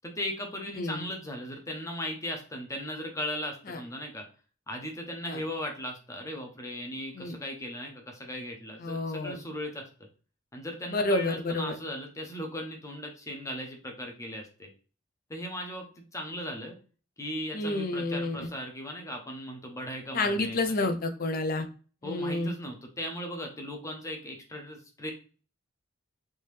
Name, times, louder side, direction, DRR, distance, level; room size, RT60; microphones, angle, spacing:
voice 1, 0.0-4.2 4.7-9.8 10.5-14.7 15.3-16.7 17.2-20.6 22.0-25.1, left 1 dB, 15° left, 2 dB, 0.7 m, -37 dB
voice 2, 8.8-9.4 10.9-11.7 17.5-18.5 20.1-21.7 22.0-22.5, left 2 dB, 45° left, 7 dB, 0.5 m, -29 dB
3.5 x 2.7 x 3.2 m, 0.38 s
head